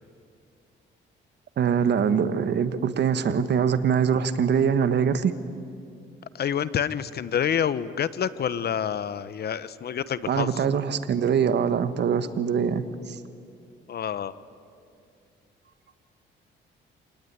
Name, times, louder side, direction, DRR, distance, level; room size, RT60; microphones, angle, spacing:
voice 1, 1.6-5.3 10.3-13.2, right 7 dB, 60° right, 12 dB, 1.4 m, -23 dB
voice 2, 6.3-10.6 13.9-14.3, left 8 dB, 55° left, 16 dB, 0.9 m, -28 dB
27.0 x 19.0 x 9.6 m, 2.4 s
cardioid pair, 90°, 20 cm